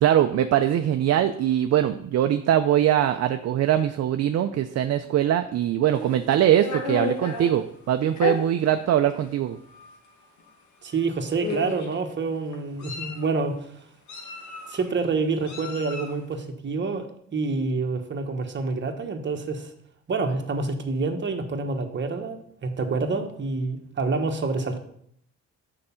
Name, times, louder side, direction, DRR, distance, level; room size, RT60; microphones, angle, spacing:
voice 1, 0.0-9.6, right 11 dB, 55° right, 8 dB, 0.5 m, -22 dB
Meow, 5.8-7.5 8.2-8.4 9.2-9.3 9.7-9.9 10.9-11.0 11.4-11.9 12.5-13.3 14.1-14.8 15.5-16.2, left 3 dB, 70° left, 1.6 m, -32 dB
voice 2, 10.8-13.8 14.7-19.7 20.1-24.8, right 4 dB, 40° right, 4 dB, 1.1 m, -27 dB
6.5 x 4.8 x 5.6 m, 0.69 s
cardioid pair, 90°, 30 cm